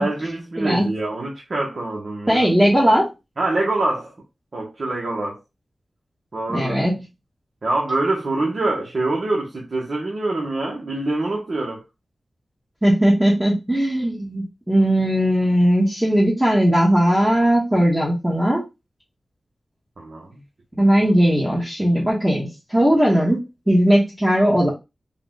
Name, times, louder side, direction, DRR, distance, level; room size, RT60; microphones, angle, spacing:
voice 1, 0.0-2.5 3.4-4.1 4.5-5.4 6.3-6.7 7.6-11.8 20.0-20.4, right 2 dB, 55° right, 1.2 m, -25 dB
voice 2, 0.6-0.9 2.3-3.1 6.5-6.9 12.8-18.6 20.8-24.7, equal, 10° right, 1.2 m, -18 dB
3.8 x 2.4 x 3.9 m
wide cardioid pair, 115°, 0 cm